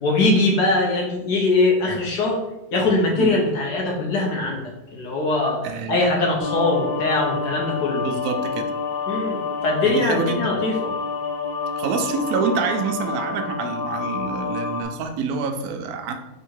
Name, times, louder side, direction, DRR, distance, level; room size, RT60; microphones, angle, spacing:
voice 1, 0.0-2.4 2.7-8.1 9.1-10.8, left 2 dB, 60° left, -2 dB, 1.3 m, -22 dB
voice 2, 5.6-6.0 8.0-8.7 9.8-10.5 11.8-16.1, right 5 dB, 75° right, 5 dB, 0.8 m, -26 dB
sound 1, 6.4-14.8, left 5 dB, 80° left, 1.7 m, -28 dB
3.7 x 2.8 x 4.5 m, 0.96 s
omnidirectional pair, 2.1 m